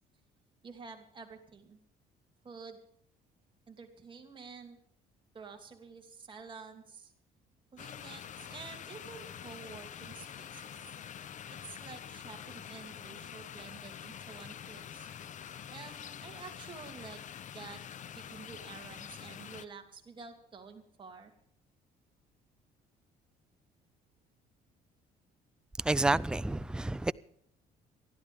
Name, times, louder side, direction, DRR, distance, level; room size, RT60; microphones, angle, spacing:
voice 1, 0.6-1.8 2.4-2.8 3.7-4.8 5.3-7.1 7.7-10.6 11.6-15.1 15.7-17.2 17.5-17.8 18.1-21.3, right 5 dB, 30° right, 2.8 m, -49 dB
sound 1, 7.8-19.6, left 9 dB, 45° left, 0.8 m, -46 dB
voice 2, 25.8-27.1, right 2 dB, 5° right, 0.5 m, -29 dB
27.0 x 11.5 x 3.5 m
cardioid pair, 110°, 17 cm